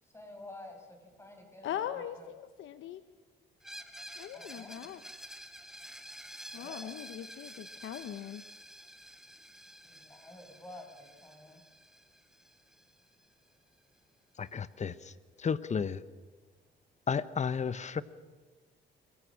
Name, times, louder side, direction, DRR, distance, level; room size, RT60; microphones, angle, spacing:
voice 1, 0.0-2.3 4.2-4.9 5.6-5.7 6.5-6.9 9.0-11.6, left 1 dB, 15° left, 3 dB, 6.6 m, -51 dB
voice 2, 1.6-3.0 4.2-5.0 6.5-8.4, left 10 dB, 75° left, 11 dB, 0.9 m, -40 dB
Screech, 3.6-13.3, equal, ahead, 2.0 m, -50 dB
voice 3, 14.4-15.1 15.4-16.0 17.1-18.0, left 6 dB, 35° left, 15 dB, 1.0 m, -32 dB
27.5 x 23.0 x 6.4 m, 1.3 s
cardioid pair, 90°, 20 cm